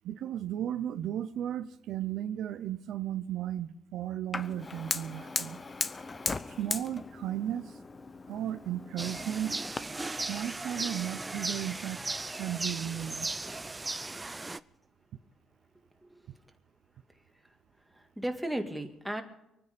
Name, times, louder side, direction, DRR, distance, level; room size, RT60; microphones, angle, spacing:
voice 1, 0.0-5.6 6.6-7.7 8.3-9.5 10.3-12.0 12.4-13.3, right 11 dB, 80° right, 0.7 m, -35 dB
Fire, 4.3-9.8, left 3 dB, 30° left, 0.7 m, -37 dB
sound 1, 9.0-14.6, right 2 dB, 20° right, 0.5 m, -37 dB
voice 2, 17.9-19.2, right 1 dB, 5° right, 1.9 m, -35 dB
24.0 x 9.6 x 5.2 m
cardioid pair, 90°, 0 cm